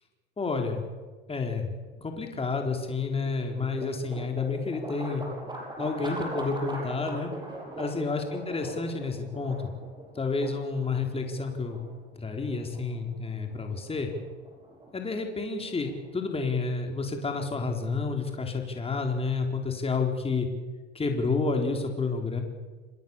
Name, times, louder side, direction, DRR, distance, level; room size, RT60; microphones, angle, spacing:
voice 1, 0.4-0.9 1.3-5.2 5.8-7.3 7.8-9.6 10.2-11.8 12.2-14.1 14.9-20.5 20.9-22.4, left 4 dB, 15° left, 3 dB, 4.2 m, -30 dB
sound 1, 2.8-16.6, right 1 dB, 15° right, 7.4 m, -42 dB
27.0 x 21.5 x 7.3 m, 1.4 s
hypercardioid pair, 95°, 33 cm